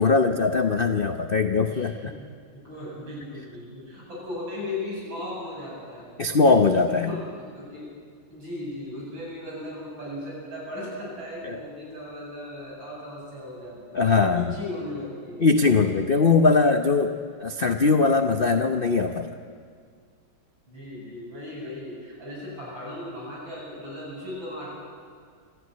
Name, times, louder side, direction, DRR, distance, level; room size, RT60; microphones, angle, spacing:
voice 1, 0.0-2.0 6.2-7.1 11.4-11.6 13.9-14.5 15.4-17.2 17.4-19.4, left 4 dB, 55° left, 6 dB, 0.6 m, -21 dB
voice 2, 1.7-2.2 2.5-6.2 6.9-7.9 8.3-15.5 20.7-24.7, left 1 dB, 65° right, -4 dB, 8.9 m, -37 dB
26.0 x 15.0 x 9.4 m, 2.1 s
omnidirectional pair, 2.3 m